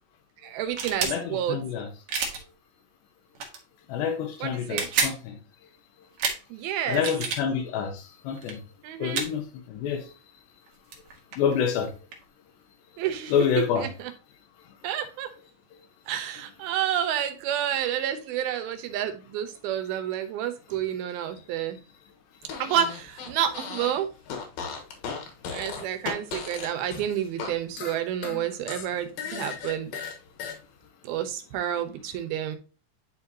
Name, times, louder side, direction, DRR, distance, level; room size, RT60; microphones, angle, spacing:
voice 1, 0.4-1.6 4.4-4.9 6.5-7.0 8.8-9.2 13.0-14.1 14.8-15.3 16.1-21.8 22.6-24.1 25.5-29.9 31.0-32.6, right 10 dB, 75° right, 2.6 m, -29 dB
sound 1, 0.7-1.2 2.1-2.4 3.4-3.6 4.6-5.2 6.2-6.4 6.9-7.4 8.4-8.5 9.1-9.3 10.7-10.8 10.9-12.2, right 5 dB, 60° right, 2.0 m, -29 dB
voice 2, 1.0-1.9 3.9-5.4 6.9-8.6 9.0-9.4 9.7-10.0 11.4-11.9 13.3-13.9, left 7 dB, 90° left, 3.2 m, -27 dB
Fart, 22.4-24.0 24.3-27.5 27.8-30.6, left 6 dB, 65° left, 2.8 m, -36 dB
10.5 x 4.2 x 2.8 m
omnidirectional pair, 4.7 m